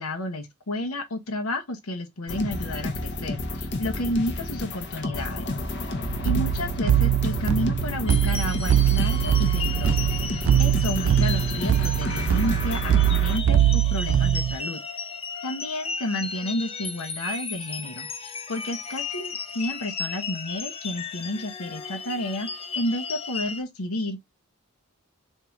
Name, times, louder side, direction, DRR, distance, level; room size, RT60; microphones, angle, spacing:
voice 1, 0.0-5.5 6.2-14.8 15.4-24.3, left 1 dB, 80° left, 1.2 m, -31 dB
sound 1, 2.3-13.4, left 2 dB, 50° left, 1.0 m, -31 dB
sound 2, 6.1-14.6, right 11 dB, 70° right, 0.3 m, -22 dB
sound 3, 8.1-23.6, left 5 dB, 25° left, 0.6 m, -35 dB
4.3 x 3.7 x 3.1 m
head